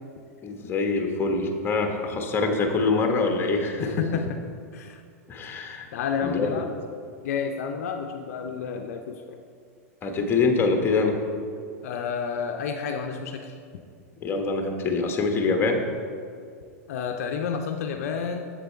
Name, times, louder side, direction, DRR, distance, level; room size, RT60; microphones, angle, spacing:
voice 1, 0.4-4.0 5.3-5.9 6.2-6.5 10.0-11.2 14.2-15.8, left 3 dB, 25° left, 4 dB, 1.2 m, -24 dB
voice 2, 3.8-4.4 4.7-5.0 5.9-6.7 7.2-9.4 11.8-13.5 16.9-18.4, left 6 dB, 70° left, 4 dB, 0.5 m, -30 dB
7.6 x 6.7 x 4.5 m, 2.2 s
hypercardioid pair, 105°, 8 cm